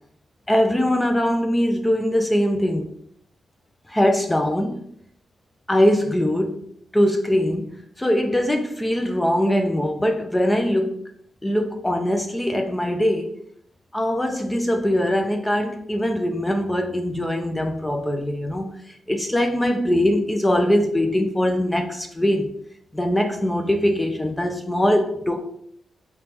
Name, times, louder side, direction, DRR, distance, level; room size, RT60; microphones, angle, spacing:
voice 1, 0.5-2.9 3.9-4.8 5.7-6.6 6.9-11.0 11.4-13.3 13.9-18.7 19.1-22.5 22.9-25.4, equal, 10° left, 4 dB, 0.3 m, -22 dB
3.0 x 2.9 x 3.4 m, 0.68 s
wide cardioid pair, 175°, 0 cm